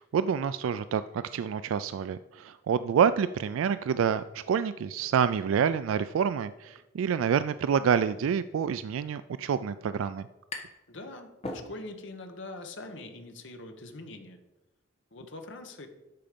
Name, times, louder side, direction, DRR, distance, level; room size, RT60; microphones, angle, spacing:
voice 1, 0.0-10.3, right 7 dB, 80° right, 13 dB, 0.3 m, -27 dB
sound 1, 10.5-10.9 11.2-12.1, left 2 dB, 30° left, 1.4 m, -40 dB
voice 2, 10.9-14.4 15.1-15.9, left 2 dB, 65° left, 6 dB, 1.2 m, -43 dB
12.5 x 5.1 x 5.2 m, 1.0 s
head